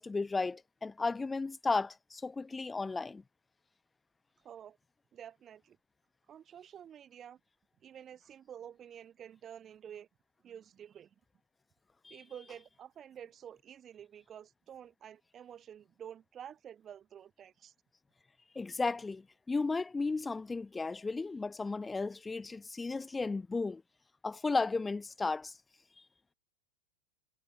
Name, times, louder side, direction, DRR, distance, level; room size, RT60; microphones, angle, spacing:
voice 1, 0.0-3.2 12.0-12.2 18.5-23.8 24.2-25.5, left 3 dB, 10° left, 0.7 m, -34 dB
voice 2, 4.4-4.8 5.1-5.8 6.3-7.4 7.8-10.1 10.4-11.1 12.1-17.7, right 9 dB, 25° right, 1.8 m, -50 dB
figure-of-eight pair, 90°, 0 cm